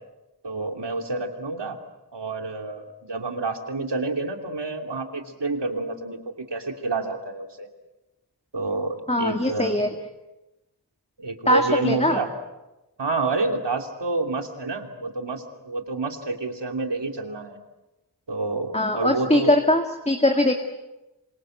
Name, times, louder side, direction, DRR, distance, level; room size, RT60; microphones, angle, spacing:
voice 1, 0.4-1.8 2.1-6.2 6.5-7.7 8.5-9.8 11.2-12.3 13.0-17.6 18.3-19.5, right 3 dB, 80° right, 4 dB, 3.0 m, -28 dB
voice 2, 9.1-9.9 11.5-12.2 18.7-20.6, left 1 dB, 15° left, 4 dB, 2.1 m, -21 dB
27.5 x 25.5 x 7.9 m, 1.0 s
wide cardioid pair, 60°, 41 cm